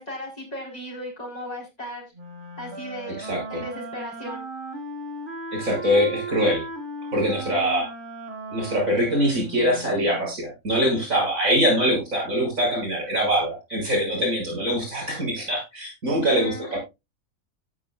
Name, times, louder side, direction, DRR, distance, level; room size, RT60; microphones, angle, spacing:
voice 1, 0.0-2.0 2.6-3.2 3.5-4.5 16.3-16.8, equal, 30° left, -1 dB, 4.5 m, -36 dB
Wind instrument woodwind instrument, 2.1-10.3, right 2 dB, 35° right, 2.2 m, -36 dB
voice 2, 3.2-3.6 5.5-6.6 7.1-7.9 8.5-16.8, equal, 70° right, -1 dB, 6.9 m, -23 dB
17.5 x 6.3 x 2.4 m, 0.24 s
omnidirectional pair, 1.4 m